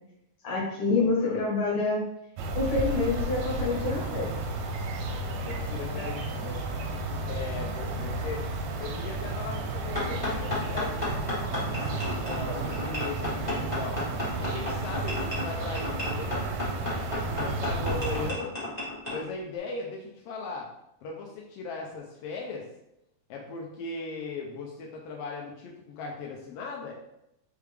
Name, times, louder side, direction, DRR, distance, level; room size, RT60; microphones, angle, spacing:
voice 1, 0.4-2.0 2.5-4.3 6.0-6.1, left 3 dB, 55° left, -3 dB, 2.0 m, -27 dB
voice 2, 1.2-1.5 5.4-6.7 7.1-8.5 8.8-14.1 14.4-16.5 17.0-18.5 19.1-20.7 21.0-22.7 23.3-26.9, left 4 dB, 80° left, -1 dB, 1.4 m, -38 dB
sound 1, 2.4-18.3, right 2 dB, 75° right, 1.4 m, -32 dB
sound 2, 9.9-19.2, left 2 dB, 35° left, 0.6 m, -33 dB
4.5 x 3.5 x 3.3 m, 0.81 s
omnidirectional pair, 3.3 m